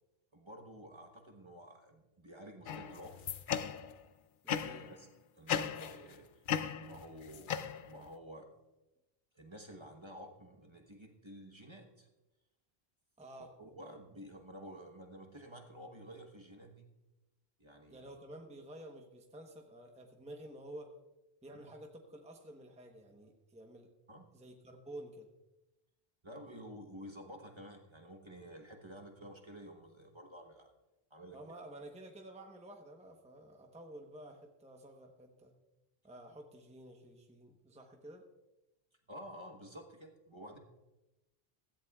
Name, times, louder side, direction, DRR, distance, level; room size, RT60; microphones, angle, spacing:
voice 1, 0.3-3.2 4.6-5.1 5.4-6.4 6.7-7.5 7.8-8.5 9.3-12.1 13.4-16.9 17.6-18.2 21.5-21.7 24.1-24.3 26.2-30.7 31.1-31.6 39.1-40.6, equal, 30° right, 3 dB, 1.2 m, -51 dB
sound 1, 2.7-4.0 4.5-4.9 5.5-6.1 6.5-8.1, left 8 dB, 60° left, 0.7 m, -37 dB
voice 2, 4.4-4.9 13.2-13.5 17.9-20.9 21.4-23.9 24.3-25.3 31.3-35.5 36.0-38.3, right 1 dB, 5° right, 3 dB, 0.9 m, -51 dB
16.0 x 14.5 x 2.4 m, 1.0 s
omnidirectional pair, 1.1 m